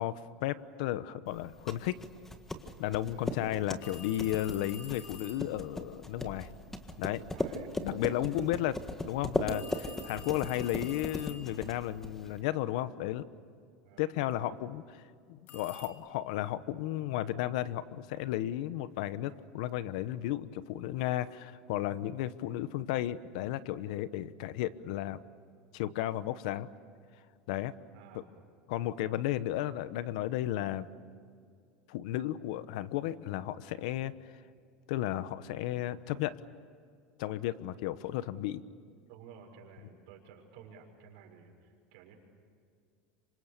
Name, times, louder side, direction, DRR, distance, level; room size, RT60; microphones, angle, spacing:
voice 1, 0.0-2.0 2.8-6.5 7.0-7.2 7.8-13.2 14.0-15.0 15.3-25.2 25.7-26.7 27.5-27.7 28.7-30.9 31.9-34.1 34.9-36.4 37.2-38.6, left 13 dB, 75° left, 15 dB, 1.1 m, -34 dB
sound 1, 1.4-12.4, left 1 dB, 10° left, 1.6 m, -38 dB
sound 2, 3.8-5.5 9.5-11.8 15.5-15.9, left 6 dB, 45° left, 3.3 m, -49 dB
voice 2, 6.9-7.7 8.1-8.5 13.8-14.6 27.9-28.4 28.8-29.1 39.1-42.2, right 6 dB, 65° right, 1 dB, 6.7 m, -54 dB
27.0 x 25.0 x 6.8 m, 2.3 s
supercardioid pair, 145°, 4 cm